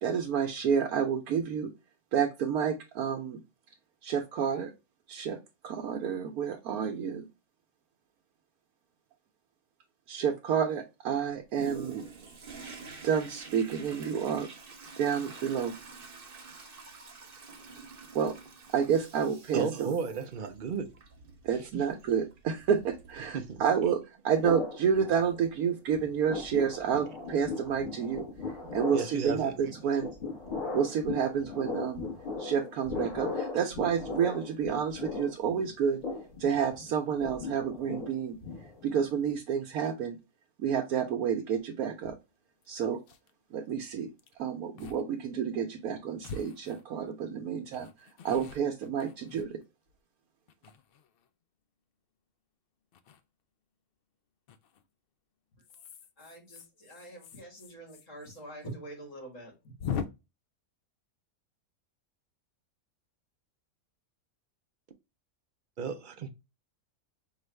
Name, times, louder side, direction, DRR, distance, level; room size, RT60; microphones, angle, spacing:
voice 1, 0.0-1.7 2.1-3.4 4.0-4.7 5.1-5.4 5.6-7.3 10.1-12.1 13.0-14.5 15.0-15.8 18.1-18.4 18.7-19.9 21.4-28.3 28.7-30.1 30.7-32.1 32.4-36.0 36.4-38.4 38.8-40.2 40.6-42.2 42.7-43.0 43.5-44.1 44.4-47.9 48.2-49.6, right 7 dB, 90° right, 1.1 m, -29 dB
Toilet flush, 11.5-24.0 24.5-24.6, right 4 dB, 45° right, 0.9 m, -48 dB
voice 2, 19.5-20.9 21.6-21.8 23.3-23.7 27.0-27.1 28.6-29.5 65.8-66.3, right 5 dB, 70° right, 0.4 m, -34 dB
sound 1, 24.4-25.7 25.9-39.1, left 4 dB, 35° left, 1.4 m, -38 dB
sound 2, 42.0-42.1 42.6-42.7 42.9-43.3 44.2-44.3 44.8-45.0 45.3-45.4 46.2-47.2 47.7-49.9 50.5-51.3 52.9-53.2 54.5-54.8 55.6-58.4 58.6-58.7 59.0-59.1 59.8-60.0, left 7 dB, 75° left, 0.5 m, -42 dB
voice 3, 56.2-59.7, right 1 dB, 60° left, 2.6 m, -46 dB
5.4 x 2.4 x 3.2 m
omnidirectional pair, 1.5 m